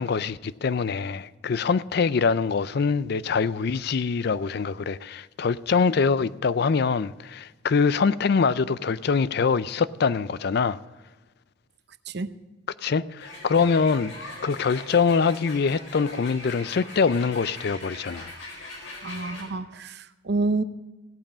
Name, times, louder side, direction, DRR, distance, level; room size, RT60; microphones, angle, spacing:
voice 1, 0.0-10.8 12.8-14.1 14.4-18.3, left 5 dB, 55° left, 0.4 m, -24 dB
sound 1, 13.2-19.4, left 2 dB, 90° left, 4.5 m, -41 dB
voice 2, 19.0-20.6, right 3 dB, 60° right, 0.7 m, -28 dB
17.0 x 8.9 x 5.1 m
head